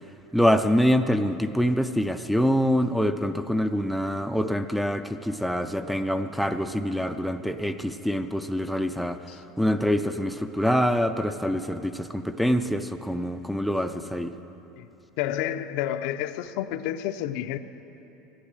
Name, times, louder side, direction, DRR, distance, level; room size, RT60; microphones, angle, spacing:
voice 1, 0.3-9.2 9.6-14.3, equal, ahead, 7 dB, 0.4 m, -25 dB
voice 2, 15.2-17.6, left 11 dB, 65° left, 10 dB, 0.6 m, -30 dB
13.5 x 10.0 x 7.5 m, 3.0 s
supercardioid pair, 145°, 0 cm